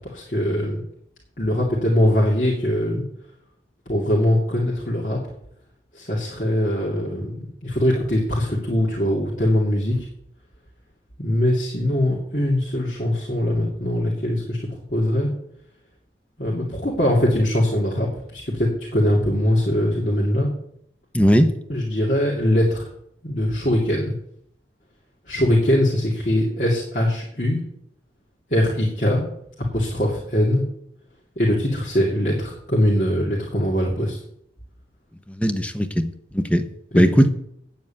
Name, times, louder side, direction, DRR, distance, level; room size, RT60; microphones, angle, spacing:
voice 1, 0.0-0.8 1.4-3.0 3.9-5.2 5.9-10.1 11.2-15.3 16.4-20.5 21.7-22.9 23.2-24.1 25.3-27.6 28.5-29.2 29.7-30.6 31.4-34.2 36.9-37.2, left 1 dB, 45° left, 2.4 m, -22 dB
voice 2, 21.1-21.5 35.4-36.7 36.9-37.3, equal, 5° left, 0.8 m, -18 dB
9.4 x 7.4 x 8.7 m
head